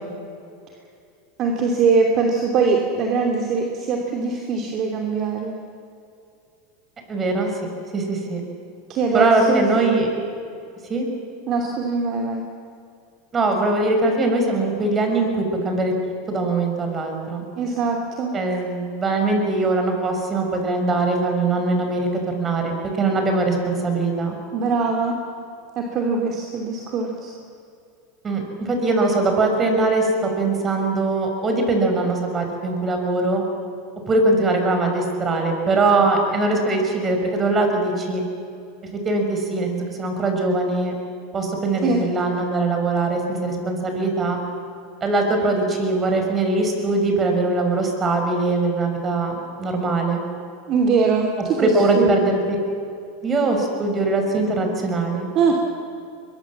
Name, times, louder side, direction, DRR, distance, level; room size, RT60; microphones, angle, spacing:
voice 1, 1.4-5.6 8.9-10.0 11.5-12.4 17.6-18.3 24.5-25.2 25.8-27.3 41.8-42.0 50.7-52.2 55.3-55.5, right 4 dB, 45° right, 2 dB, 2.9 m, -22 dB
voice 2, 7.1-7.5 7.9-8.4 9.1-10.1 10.9-11.1 13.3-15.9 16.3-17.4 18.3-24.3 28.2-33.4 34.1-38.2 38.9-40.9 41.3-44.4 45.0-50.2 51.6-52.6 53.2-55.3, right 2 dB, 25° right, 3 dB, 6.1 m, -21 dB
22.5 x 22.5 x 7.5 m, 2.5 s
hypercardioid pair, 100°, 0 cm